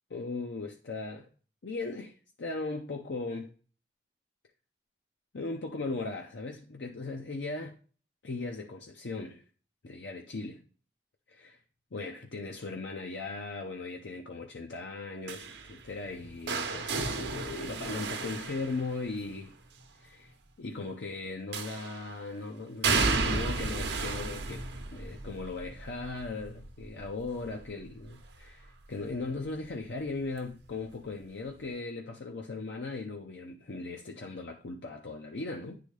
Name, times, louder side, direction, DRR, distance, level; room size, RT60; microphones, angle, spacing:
voice 1, 0.1-1.3 1.6-3.5 5.3-7.8 8.2-9.4 9.8-10.6 11.3-11.6 11.9-19.5 20.0-24.6 24.9-35.8, left 3 dB, 90° left, 0.7 m, -38 dB
sound 1, 15.3-19.3 21.5-22.1 22.8-28.6 29.0-29.4 30.6-30.7, right 4 dB, 85° right, 0.8 m, -33 dB
9.2 x 3.9 x 3.3 m
head